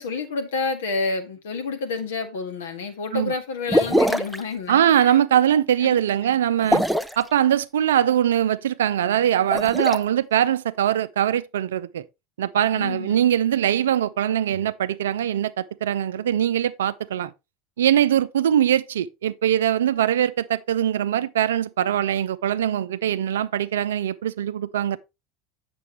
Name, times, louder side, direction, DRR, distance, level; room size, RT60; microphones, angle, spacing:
voice 1, 0.0-5.2 5.8-6.0 12.8-13.2, left 4 dB, 70° left, 1.7 m, -29 dB
sound 1, 3.7-4.4 6.6-7.2 9.4-10.0, equal, ahead, 0.6 m, -22 dB
voice 2, 4.7-6.8 7.2-12.0 12.4-17.3 17.8-25.0, right 10 dB, 75° right, 0.5 m, -22 dB
8.3 x 6.9 x 3.2 m
figure-of-eight pair, 80°, 0 cm